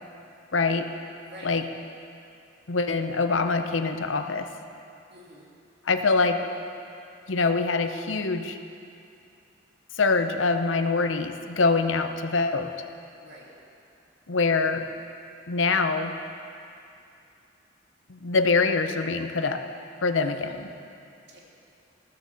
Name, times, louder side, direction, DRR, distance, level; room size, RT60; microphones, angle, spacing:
voice 1, 0.5-0.9 1.4-1.6 2.7-4.5 5.9-6.4 7.3-8.6 10.0-12.7 14.3-14.8 15.5-16.1 18.1-19.6 20.0-20.7, left 4 dB, 80° left, 8 dB, 0.7 m, -24 dB
voice 2, 5.1-5.5 13.2-13.5 20.2-20.6 21.3-21.4, equal, 60° right, -4 dB, 2.7 m, -47 dB
14.5 x 13.5 x 4.0 m, 2.5 s
head